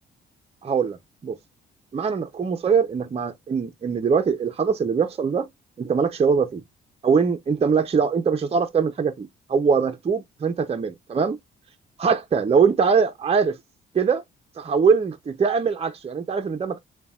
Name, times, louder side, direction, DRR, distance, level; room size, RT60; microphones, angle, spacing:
voice 1, 0.6-1.0 1.2-1.4 1.9-5.5 5.8-6.6 7.0-11.4 12.0-13.6 13.9-14.2 14.6-16.8, right 5 dB, 30° right, 0.6 m, -22 dB
6.8 x 2.3 x 2.4 m
cardioid pair, 90°, 20 cm